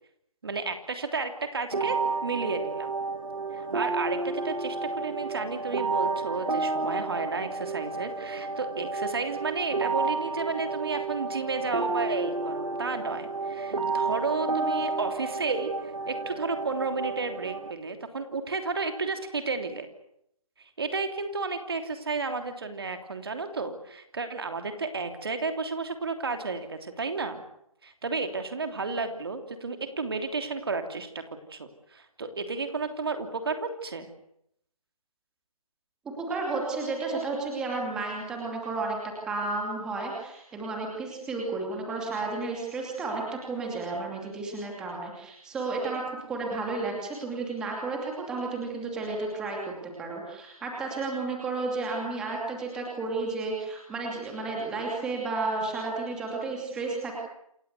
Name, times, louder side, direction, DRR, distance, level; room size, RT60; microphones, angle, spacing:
voice 1, 0.4-2.9 3.5-19.9 20.6-27.4 27.8-31.2 31.5-34.1, right 4 dB, 40° right, 7 dB, 3.1 m, -32 dB
sound 1, 1.7-17.7, right 3 dB, 65° right, 2.3 m, -31 dB
voice 2, 36.2-57.1, right 3 dB, 5° right, -1 dB, 2.7 m, -32 dB
28.0 x 16.5 x 9.6 m, 0.75 s
figure-of-eight pair, 170°, 18 cm